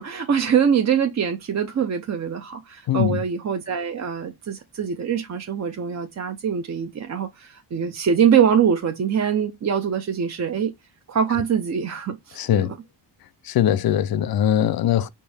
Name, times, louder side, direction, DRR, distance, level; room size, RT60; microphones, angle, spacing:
voice 1, 0.0-10.7 11.1-12.7, right 7 dB, 35° right, 0.5 m, -23 dB
voice 2, 2.9-3.2 12.4-12.7 13.4-15.1, left 10 dB, 50° left, 0.5 m, -21 dB
4.5 x 2.7 x 3.3 m
cardioid pair, 95°, 47 cm